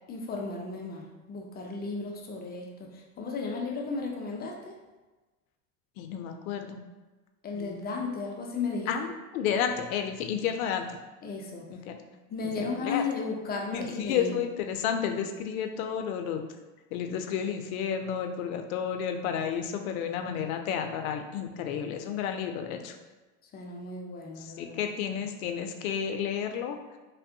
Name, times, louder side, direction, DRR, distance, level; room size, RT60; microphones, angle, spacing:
voice 1, 0.1-4.8 7.4-9.0 11.2-11.7 12.1-14.4 23.5-24.8 25.2-25.3, left 4 dB, 25° left, 0 dB, 0.4 m, -35 dB
voice 2, 6.0-6.8 7.5-7.9 8.9-9.1 9.3-10.9 11.7-12.0 12.6-13.0 13.7-16.4 16.9-22.9 24.4-26.8, left 8 dB, 75° left, 6 dB, 0.5 m, -31 dB
3.3 x 2.1 x 2.6 m, 1.2 s
hypercardioid pair, 95°, 43 cm